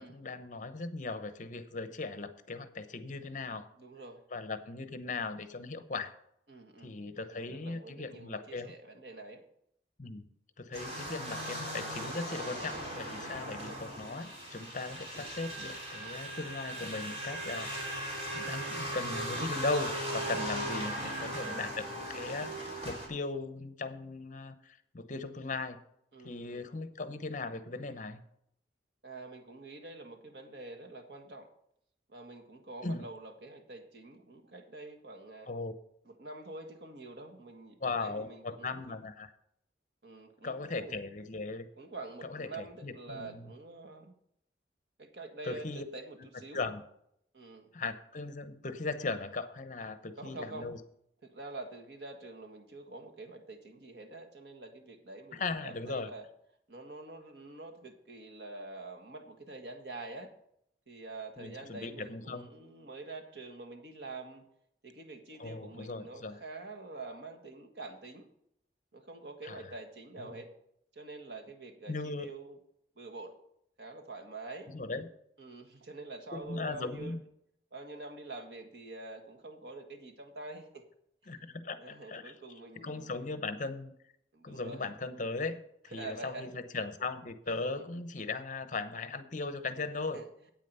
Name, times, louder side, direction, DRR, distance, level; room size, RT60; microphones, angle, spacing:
voice 1, 0.0-3.7 4.3-6.1 6.8-8.7 10.0-10.2 10.6-25.8 26.2-28.2 32.8-33.0 35.5-35.7 37.8-39.3 40.4-41.7 42.2-43.5 45.4-45.9 46.5-46.8 47.7-50.8 55.3-56.1 61.4-62.5 65.4-66.4 69.4-69.6 70.2-70.4 71.9-72.3 74.7-75.1 76.3-77.2 81.3-82.3 82.8-83.9 84.4-90.2, left 3 dB, 45° left, 11 dB, 0.8 m, -38 dB
voice 2, 3.8-4.2 6.5-9.4 10.7-10.9 13.5-13.8 21.2-21.6 26.1-26.7 29.0-31.5 32.1-35.5 36.0-39.0 40.0-41.0 41.8-44.1 45.0-46.6 47.3-47.7 50.2-50.7 51.2-56.3 56.7-60.3 60.9-64.4 64.8-68.3 68.9-70.5 70.9-72.6 72.9-73.4 73.8-74.7 75.4-77.2 77.7-80.8 81.2-81.4 81.8-83.3 84.3-84.9 85.9-86.5 87.6-87.9 90.1-90.3, right 2 dB, 70° right, 3 dB, 1.6 m, -46 dB
sound 1, 10.7-23.1, right 1 dB, 35° right, 3.3 m, -38 dB
9.0 x 8.7 x 5.5 m, 0.72 s
head